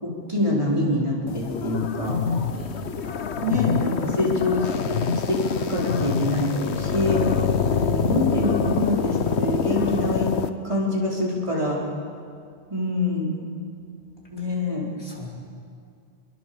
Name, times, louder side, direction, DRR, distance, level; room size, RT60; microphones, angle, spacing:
voice 1, 0.0-2.2 3.4-4.8 5.3-5.4 5.7-7.2 7.6-10.4 10.6-11.8 12.7-13.3 14.3-14.9, left 1 dB, 25° right, -4 dB, 4.7 m, -25 dB
sound 1, 1.3-10.5, left 6 dB, 75° left, 1.3 m, -25 dB
voice 2, 2.5-3.2 14.2-14.3 15.0-15.3, equal, 60° left, -3 dB, 5.1 m, -41 dB
29.5 x 23.0 x 7.1 m, 2.3 s
omnidirectional pair, 1.1 m